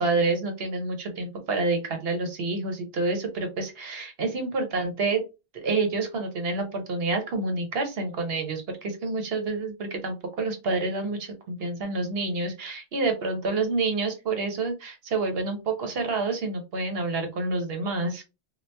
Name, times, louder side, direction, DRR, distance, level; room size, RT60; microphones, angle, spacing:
voice 1, 0.0-5.2 5.5-18.2, right 3 dB, 65° right, 4 dB, 1.1 m, -28 dB
2.7 x 2.4 x 3.3 m, 0.27 s
omnidirectional pair, 1.1 m